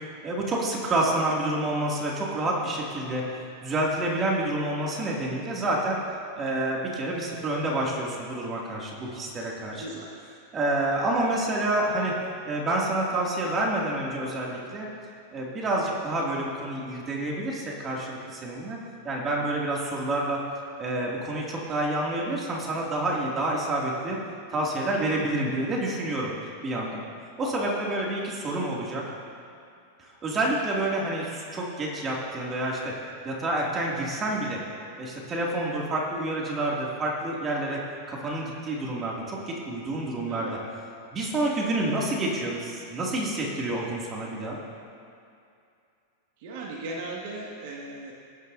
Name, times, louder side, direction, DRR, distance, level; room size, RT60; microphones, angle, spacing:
voice 1, 0.2-3.2 3.6-6.0 6.4-9.8 10.5-12.1 12.4-14.9 15.3-18.8 19.0-20.4 20.8-24.2 24.5-26.3 26.6-27.0 27.4-29.0 30.0-32.9 33.2-34.6 35.0-37.8 38.1-40.6 41.1-44.6, right 1 dB, 30° right, -3 dB, 2.6 m, -28 dB
voice 2, 9.7-10.2 27.4-27.7 40.3-40.6 46.4-48.1, right 2 dB, 60° right, -3 dB, 2.0 m, -37 dB
19.0 x 10.0 x 2.8 m, 2.4 s
hypercardioid pair, 100°, 0 cm